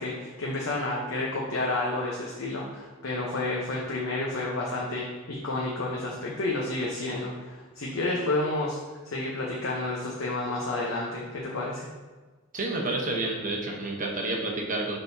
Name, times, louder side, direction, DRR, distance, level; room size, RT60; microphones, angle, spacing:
voice 1, 0.0-8.8 9.0-11.9, left 2 dB, 70° left, -3 dB, 0.9 m, -30 dB
voice 2, 12.5-15.0, right 2 dB, 35° right, -1 dB, 1.0 m, -29 dB
10.5 x 3.9 x 2.7 m, 1.3 s
head